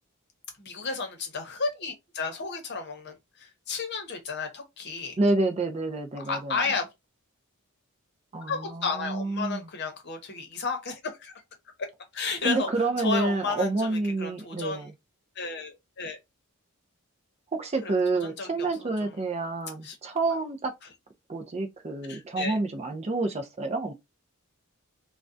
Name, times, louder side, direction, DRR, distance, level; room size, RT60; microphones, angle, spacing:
voice 1, 0.6-5.2 6.3-6.9 8.5-11.3 11.8-11.9 12.1-12.7 13.0-14.9 15.4-16.2 17.8-18.0 18.4-18.7 19.0-19.1 19.8-20.0 22.1-22.6, left 4 dB, 50° left, 0.7 m, -32 dB
voice 2, 5.2-6.6 8.3-9.7 12.4-14.9 17.5-20.7 21.3-23.9, right 3 dB, 30° right, 0.4 m, -28 dB
2.3 x 2.1 x 2.5 m
head